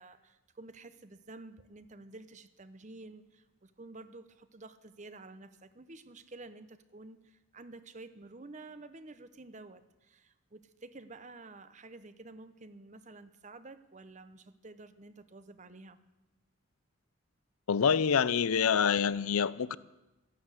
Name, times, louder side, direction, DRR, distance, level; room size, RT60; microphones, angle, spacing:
voice 1, 0.0-16.0, right 2 dB, 35° right, 0.8 m, -50 dB
voice 2, 17.7-19.8, left 7 dB, 80° left, 0.5 m, -26 dB
13.5 x 11.5 x 8.2 m
head